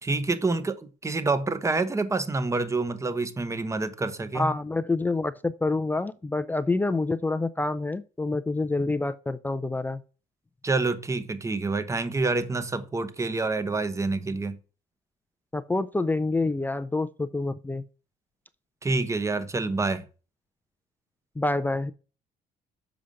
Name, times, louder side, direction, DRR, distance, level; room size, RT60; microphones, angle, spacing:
voice 1, 0.0-4.5 10.6-14.6 18.8-20.0, right 3 dB, 15° right, 0.9 m, -27 dB
voice 2, 4.3-10.0 15.5-17.8 21.4-21.9, left 2 dB, 10° left, 0.4 m, -27 dB
7.0 x 5.0 x 5.2 m
cardioid pair, 110°, 17 cm